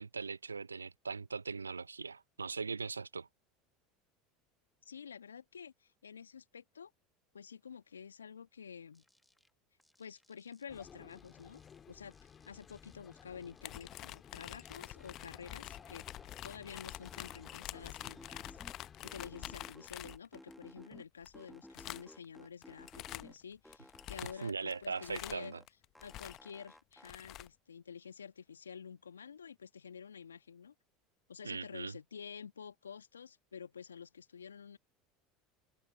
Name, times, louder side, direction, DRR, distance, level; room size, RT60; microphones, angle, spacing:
voice 1, 0.0-3.3 24.4-25.6 31.4-32.0, right 4 dB, 85° right, 0.5 m, -40 dB
voice 2, 4.8-6.9 7.3-9.0 10.0-11.6 11.9-16.0 16.4-18.6 19.0-25.5 26.0-30.7 31.3-34.8, left 7 dB, 85° left, 1.6 m, -50 dB
sound 1, 8.9-9.5 9.8-11.8 12.1-14.1 14.4-16.4 16.7-18.7 19.0-21.0 21.3-23.3 23.6-25.7 25.9-27.1, left 1 dB, 5° left, 1.4 m, -58 dB
sound 2, 10.7-19.4, left 7 dB, 30° left, 2.7 m, -56 dB
sound 3, 13.6-20.5 21.2-21.4 21.7-22.2 22.6-23.4 23.7-26.6 26.9-27.5, left 15 dB, 50° left, 0.8 m, -47 dB
figure-of-eight pair, 75°, 0 cm